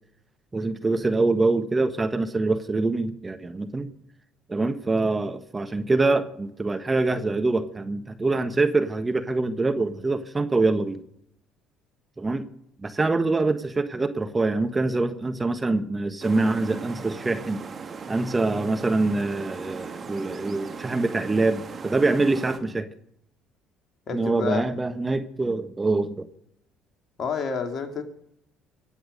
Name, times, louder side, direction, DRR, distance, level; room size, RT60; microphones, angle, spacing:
voice 1, 0.5-3.9 4.5-11.0 12.2-12.4 12.8-17.6 18.1-22.9 24.1-26.3, right 3 dB, 25° right, 1.3 m, -24 dB
rushing rapids, 16.2-22.6, right 5 dB, 40° right, 2.4 m, -38 dB
voice 2, 24.1-24.6 27.2-28.0, left 6 dB, 45° left, 3.0 m, -29 dB
24.5 x 8.8 x 5.3 m
hypercardioid pair, 60°, 0 cm